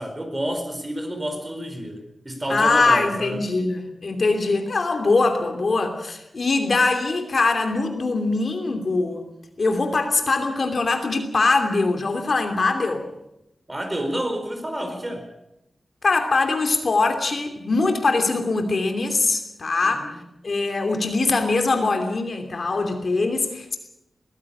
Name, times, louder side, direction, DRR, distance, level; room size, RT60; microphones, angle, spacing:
voice 1, 0.0-3.4 13.7-15.3 19.8-20.2, right 1 dB, 20° right, 5 dB, 4.5 m, -29 dB
voice 2, 2.5-9.3 9.6-13.0 16.0-20.1 20.4-23.8, left 3 dB, 55° left, 5 dB, 2.9 m, -22 dB
21.5 x 15.0 x 8.7 m, 0.87 s
wide cardioid pair, 105°, 0 cm